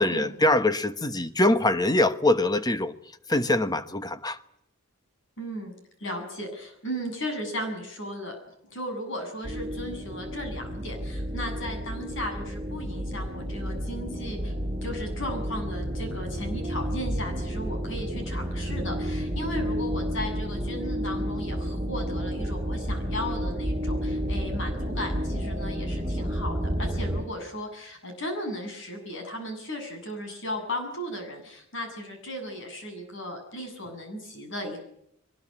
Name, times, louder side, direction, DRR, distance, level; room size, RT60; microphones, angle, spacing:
voice 1, 0.0-4.4 6.9-7.0, left 1 dB, 20° left, 11 dB, 1.1 m, -24 dB
voice 2, 5.4-5.7 6.0-8.4 8.7-14.5 14.8-34.8, left 1 dB, 60° left, 5 dB, 7.6 m, -36 dB
sound 1, 9.4-27.2, equal, 25° right, 3.6 m, -31 dB
22.5 x 20.5 x 9.9 m, 0.76 s
head